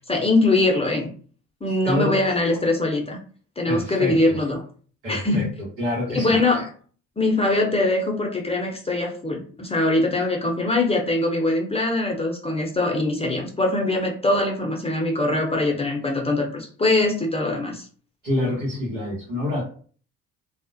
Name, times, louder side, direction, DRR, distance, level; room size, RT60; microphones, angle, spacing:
voice 1, 0.1-1.1 1.6-3.2 3.6-4.6 5.1-5.5 6.1-6.7 7.2-17.9, left 2 dB, 15° left, 1 dB, 0.6 m, -22 dB
voice 2, 1.8-2.2 3.7-4.4 5.0-5.4 5.8-6.5 18.2-19.6, left 1 dB, 85° right, -8 dB, 1.1 m, -26 dB
2.4 x 2.1 x 2.5 m, 0.43 s
hypercardioid pair, 55°, 38 cm